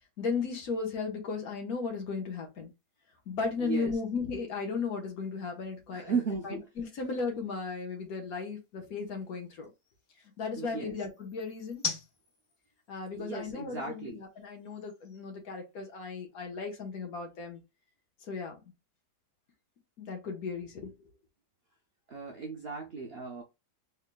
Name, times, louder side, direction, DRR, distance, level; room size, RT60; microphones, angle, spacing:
voice 1, 0.2-2.7 3.3-6.2 6.4-9.7 10.4-11.8 12.9-17.6 18.3-18.6 20.0-20.9, left 4 dB, 60° left, 1.5 m, -35 dB
sound 1, 2.0-16.3, left 4 dB, 30° left, 1.8 m, -47 dB
voice 2, 3.6-3.9 5.9-6.6 10.6-11.0 13.2-14.2 22.1-23.4, right 5 dB, 75° right, 0.5 m, -35 dB
3.7 x 3.3 x 2.2 m
omnidirectional pair, 1.8 m